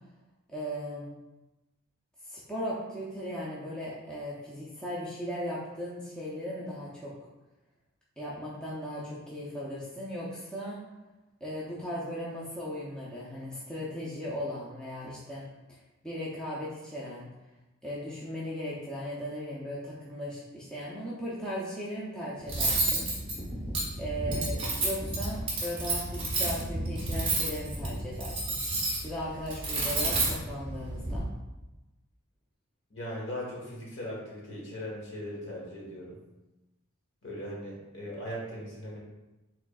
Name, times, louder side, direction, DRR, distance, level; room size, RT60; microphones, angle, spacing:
voice 1, 0.5-1.1 2.2-7.1 8.2-10.8 11.4-15.5 16.0-17.3 17.8-23.1 24.0-28.6 29.0-31.3, equal, 5° left, -7 dB, 0.6 m, -37 dB
Cutlery silverware, 22.5-31.2, right 2 dB, 25° right, 1.0 m, -31 dB
voice 2, 32.9-36.2 37.2-39.0, equal, 55° left, -3 dB, 1.3 m, -39 dB
4.8 x 3.8 x 2.4 m, 1.0 s
head